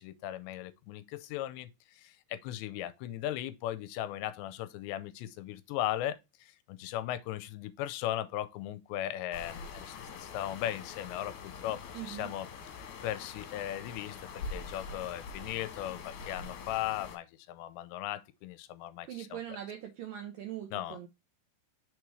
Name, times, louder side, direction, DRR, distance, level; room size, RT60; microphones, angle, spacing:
voice 1, 0.0-12.5 13.0-19.4 20.7-21.0, left 13 dB, 85° left, 2.8 m, -37 dB
sound 1, 9.3-17.2, left 5 dB, 65° left, 2.9 m, -44 dB
voice 2, 11.9-12.3 19.1-21.1, right 11 dB, 85° right, 1.9 m, -41 dB
6.6 x 3.1 x 4.8 m
omnidirectional pair, 5.2 m